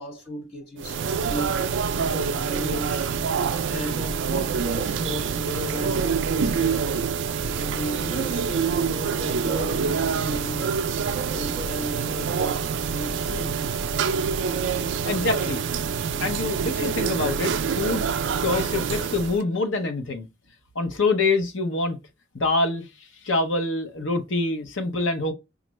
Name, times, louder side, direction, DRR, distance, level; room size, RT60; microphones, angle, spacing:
voice 1, 0.0-1.6 2.1-3.1 3.7-7.0 7.5-10.8 11.3-13.6, equal, 55° left, 2.1 m, -35 dB
sound 1, 0.8-19.4, right 6 dB, 65° right, 0.4 m, -26 dB
voice 2, 15.0-15.6 16.2-18.0 18.4-20.3 20.7-22.0 22.3-22.9 23.2-25.3, left 3 dB, 75° left, 0.9 m, -25 dB
5.1 x 2.4 x 3.1 m
head